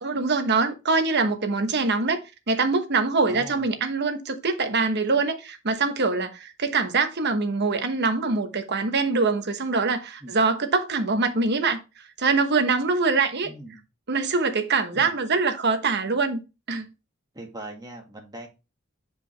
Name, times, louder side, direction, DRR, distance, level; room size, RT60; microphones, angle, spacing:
voice 1, 0.0-2.2 2.5-11.8 12.2-13.5 14.1-16.4 16.7-16.8, right 4 dB, 55° right, 1.1 m, -24 dB
voice 2, 3.3-3.7 10.2-10.3 13.4-13.8 14.9-15.1 17.3-18.5, right 1 dB, 20° right, 1.9 m, -40 dB
8.3 x 5.0 x 3.3 m
head